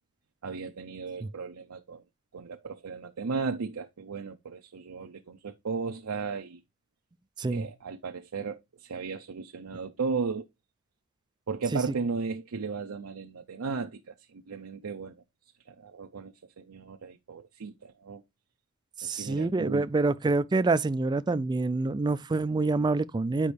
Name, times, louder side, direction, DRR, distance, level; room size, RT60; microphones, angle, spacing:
voice 1, 0.4-2.0 2.3-6.6 7.5-10.5 11.5-15.1 15.7-18.2 19.0-19.9, right 4 dB, 85° right, 0.6 m, -35 dB
voice 2, 7.4-7.7 11.7-11.8 19.0-23.5, right 3 dB, 20° right, 0.3 m, -27 dB
8.5 x 5.2 x 3.3 m
head